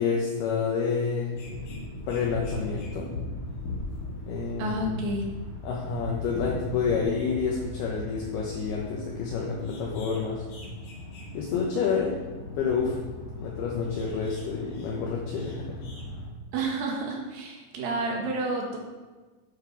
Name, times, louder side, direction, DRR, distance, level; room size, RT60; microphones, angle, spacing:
voice 1, 0.0-1.3 2.1-3.1 4.3-4.9 5.6-10.4 11.3-12.2 12.6-13.0 13.4-15.8, left 5 dB, 75° left, -1 dB, 2.4 m, -29 dB
sound 1, 1.3-16.3, left 2 dB, 50° left, 3.2 m, -38 dB
voice 2, 4.6-5.2 16.5-18.8, right 2 dB, 60° right, 0 dB, 2.6 m, -30 dB
10.5 x 8.4 x 4.7 m, 1.3 s
omnidirectional pair, 5.8 m